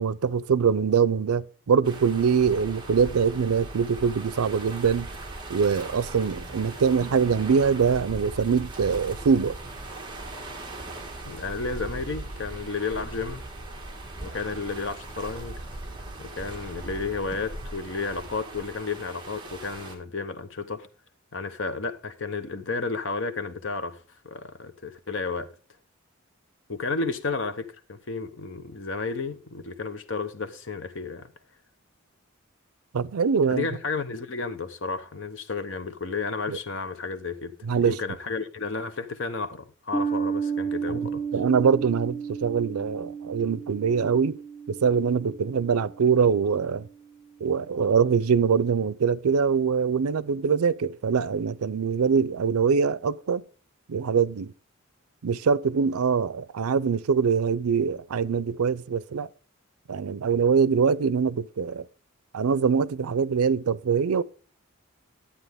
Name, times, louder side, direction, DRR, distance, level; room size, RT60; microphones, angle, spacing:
voice 1, 0.0-5.1 5.5-9.6 32.9-33.7 36.5-36.6 37.6-38.0 41.3-44.4 44.7-46.9 47.4-53.4 53.9-54.5 55.2-59.3 59.9-61.8 62.3-64.2, right 6 dB, 90° right, 0.5 m, -23 dB
sound 1, 1.8-19.9, right 2 dB, 20° right, 1.6 m, -39 dB
voice 2, 11.2-13.4 14.2-15.6 16.2-20.9 21.3-25.5 26.7-31.3 33.5-41.2, left 4 dB, 60° left, 0.8 m, -32 dB
sound 2, 39.9-46.7, right 6 dB, 30° left, 2.7 m, -33 dB
11.5 x 8.5 x 3.5 m
head